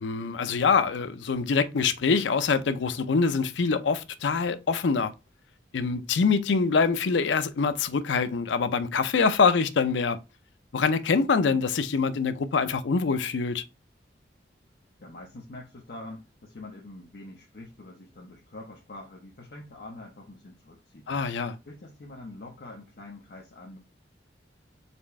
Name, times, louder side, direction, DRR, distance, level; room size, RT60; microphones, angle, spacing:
voice 1, 0.0-5.1 5.7-10.2 10.7-13.6 21.1-21.6, left 5 dB, 85° left, 0.5 m, -24 dB
voice 2, 15.0-21.1 21.7-23.8, left 2 dB, 60° left, 0.8 m, -45 dB
4.2 x 3.5 x 3.1 m
head